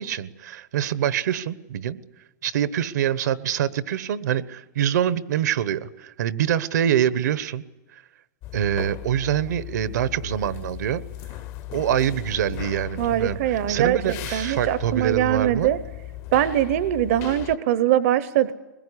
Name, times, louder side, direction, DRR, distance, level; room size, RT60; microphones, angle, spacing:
voice 1, 0.0-2.0 2.4-7.6 7.9-8.0 8.5-11.0 11.7-15.8, right 10 dB, 70° right, 16 dB, 1.1 m, -25 dB
sound 1, 8.4-17.6, left 14 dB, 30° left, 0.8 m, -37 dB
voice 2, 13.0-15.8 16.3-18.5, right 12 dB, 50° right, 14 dB, 0.8 m, -22 dB
23.0 x 21.0 x 10.0 m, 1.1 s
supercardioid pair, 165°, 10 cm